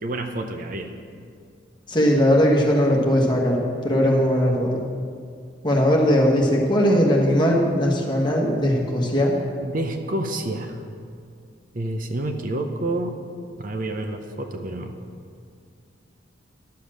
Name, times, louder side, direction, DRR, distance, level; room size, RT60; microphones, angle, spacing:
voice 1, 0.0-1.0 9.6-10.8 11.7-13.1 13.6-15.0, right 1 dB, 50° right, 6 dB, 0.7 m, -28 dB
voice 2, 1.9-3.6 3.8-4.8 5.6-9.4, equal, 25° left, -2 dB, 1.5 m, -19 dB
11.5 x 7.0 x 6.3 m, 2.2 s
head